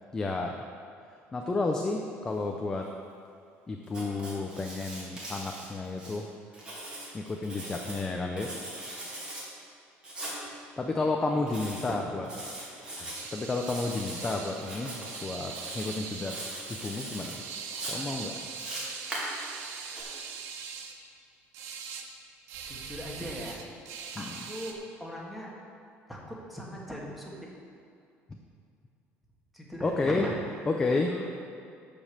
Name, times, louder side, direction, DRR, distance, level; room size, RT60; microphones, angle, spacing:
voice 1, 0.1-0.5 1.3-2.9 3.7-6.3 7.1-8.6 10.5-12.3 12.9-16.3 16.7-17.4 17.9-18.3 24.2-24.3 28.3-28.4 29.8-30.3 30.7-31.1, left 3 dB, 15° left, 2 dB, 0.5 m, -31 dB
Writing, 3.9-6.2 6.5-8.0 8.4-9.4 10.0-10.4 11.5-11.9 12.2-13.2 13.6-14.3 14.6-15.2 15.5-16.0 16.3-17.3 17.7-20.0, right 1 dB, 20° right, 2.5 m, -40 dB
voice 2, 11.9-12.2 22.7-23.6 24.1-25.5 26.1-27.5 29.5-30.6 30.9-31.3, equal, ahead, -4 dB, 1.7 m, -40 dB
sound 1, 13.1-20.9 21.5-22.1 22.5-24.7, right 6 dB, 70° right, 1.0 m, -41 dB
13.0 x 5.2 x 6.5 m, 2.4 s
cardioid pair, 170°, 5 cm